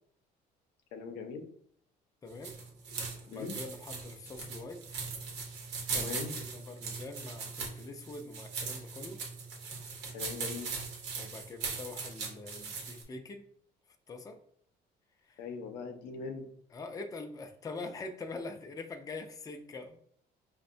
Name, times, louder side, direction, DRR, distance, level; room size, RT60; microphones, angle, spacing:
voice 1, 0.9-1.4 3.3-3.5 5.9-6.3 10.1-10.7 15.4-16.5, left 5 dB, 85° left, 5 dB, 0.6 m, -40 dB
voice 2, 2.2-2.6 3.3-5.0 5.9-9.2 11.2-13.4 14.1-14.4 15.3-15.4 16.7-20.0, left 3 dB, 20° left, 5 dB, 0.4 m, -44 dB
sound 1, 2.3-13.0, right 5 dB, 90° right, 0.8 m, -40 dB
5.2 x 2.1 x 2.5 m, 0.63 s
cardioid pair, 110°, 17 cm